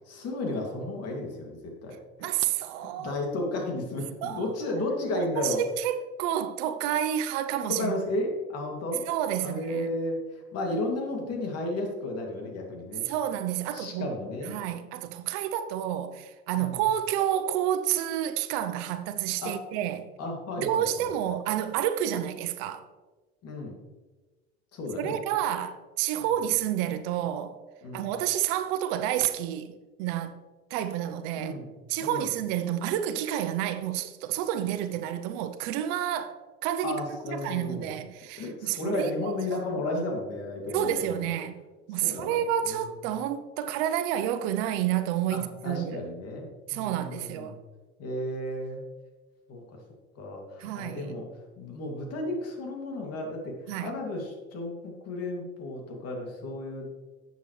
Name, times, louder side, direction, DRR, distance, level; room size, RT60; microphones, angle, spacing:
voice 1, 0.1-2.0 3.0-5.6 7.7-9.1 9.4-13.0 13.7-14.5 16.6-16.8 19.4-19.6 20.2-21.1 23.4-23.8 24.7-25.2 27.8-28.1 31.4-31.7 32.0-32.3 36.8-37.9 38.4-41.3 42.0-42.9 45.3-47.6 48.0-48.8 49.5-49.6 50.2-51.3 51.6-56.9, left 1 dB, 50° left, 2.6 m, -33 dB
voice 2, 2.2-3.2 4.2-4.5 5.1-7.9 9.1-9.9 13.1-14.1 14.4-20.1 20.6-22.8 25.0-27.6 27.9-30.4 30.7-31.5 31.9-36.4 36.6-37.0 37.3-39.6 40.0-40.1 40.7-41.6 41.9-46.0 46.7-47.6 50.6-51.2 53.7-54.0, right 11 dB, 65° right, 0.9 m, -29 dB
11.5 x 8.0 x 3.3 m
supercardioid pair, 95°, 32 cm